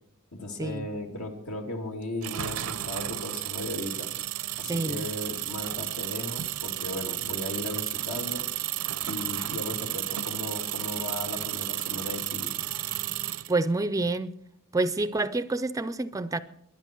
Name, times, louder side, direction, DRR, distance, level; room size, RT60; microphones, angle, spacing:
voice 1, 0.3-4.1 4.6-8.5 9.1-12.6, left 1 dB, 70° left, 2.6 m, -36 dB
sound 1, 2.2-13.5, right 14 dB, 80° right, 0.7 m, -33 dB
voice 2, 4.7-5.1 13.5-14.4 14.7-16.4, right 2 dB, 15° right, 0.5 m, -28 dB
22.0 x 10.5 x 4.5 m
head